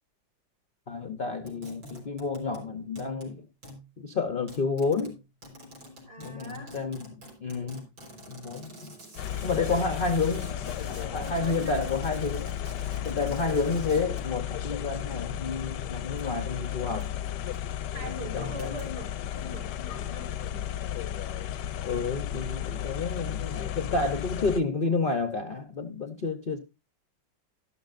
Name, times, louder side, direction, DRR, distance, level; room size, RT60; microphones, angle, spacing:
voice 1, 0.9-3.5 4.0-5.2 6.2-7.8 8.3-8.9 9.4-10.6 10.9-12.5 13.0-17.1 18.3-18.8 21.8-26.6, left 4 dB, 50° left, 0.6 m, -30 dB
sound 1, 1.4-2.7 3.0-3.4 3.6-3.9 4.5-14.4 15.1-15.4 16.2-16.3 17.0-17.3 17.5-17.6 18.6-18.8, equal, 75° right, 5.1 m, -47 dB
voice 2, 6.0-6.8 9.6-11.9 12.9-13.3 17.9-20.7, right 1 dB, 50° right, 2.9 m, -43 dB
sound 2, 9.2-24.6, left 11 dB, 70° left, 1.2 m, -34 dB
12.5 x 12.0 x 2.5 m
omnidirectional pair, 2.1 m